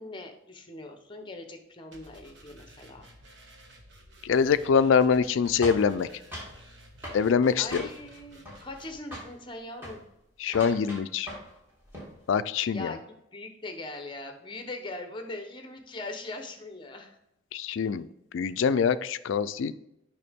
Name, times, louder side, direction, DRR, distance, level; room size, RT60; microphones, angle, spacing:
voice 1, 0.0-3.0 7.6-10.0 12.7-13.0 13.3-17.2, left 2 dB, 25° left, 5 dB, 0.9 m, -41 dB
sound 1, 1.9-9.0, right 1 dB, 60° right, 1.3 m, -53 dB
voice 2, 4.2-6.1 7.1-7.9 10.4-11.3 12.3-13.0 17.5-18.1 18.3-19.7, left 6 dB, 70° left, 12 dB, 0.3 m, -24 dB
sound 2, 5.6-6.6 7.0-7.2 7.7-8.2 8.4-8.9 9.1-9.4 9.7-10.0 10.5-11.6 11.8-12.1, equal, 10° right, 2.5 m, -40 dB
6.8 x 5.8 x 3.5 m, 0.81 s
head